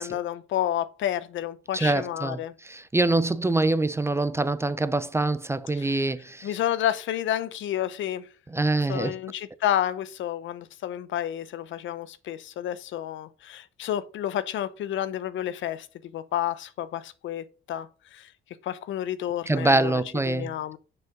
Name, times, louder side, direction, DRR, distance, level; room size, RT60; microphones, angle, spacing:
voice 1, 0.0-2.5 5.7-6.1 6.4-8.3 8.9-18.3 18.6-20.8, left 11 dB, 75° left, 0.6 m, -30 dB
voice 2, 1.7-6.5 8.5-9.1 19.5-20.5, right 2 dB, 15° right, 0.4 m, -25 dB
6.5 x 4.4 x 5.1 m
cardioid pair, 90°, 20 cm